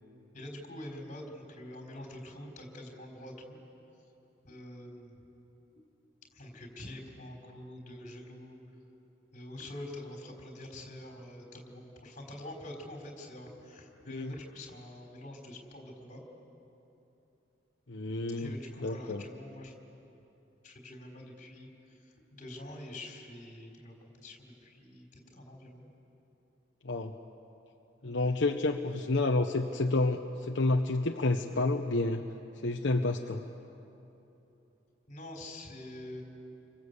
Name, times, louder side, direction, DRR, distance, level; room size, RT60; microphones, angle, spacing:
voice 1, 0.3-3.6 4.4-5.1 6.3-8.6 9.3-16.2 18.3-19.7 20.6-23.9 24.2-25.9 28.0-28.5 35.1-36.2, left 1 dB, 40° left, 0 dB, 4.4 m, -46 dB
voice 2, 17.9-18.5 18.8-19.2 26.8-27.2 28.0-32.2 32.6-33.4, left 2 dB, 70° left, 3 dB, 0.9 m, -29 dB
28.5 x 24.5 x 8.2 m, 3.0 s
head